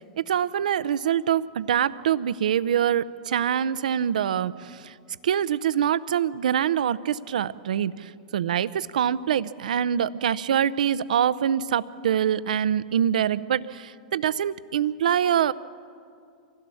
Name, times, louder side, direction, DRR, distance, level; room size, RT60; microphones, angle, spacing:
voice 1, 0.2-4.9 5.2-15.5, right 9 dB, 75° right, 15 dB, 0.6 m, -25 dB
25.0 x 16.5 x 7.0 m, 2.4 s
hypercardioid pair, 110°, 4 cm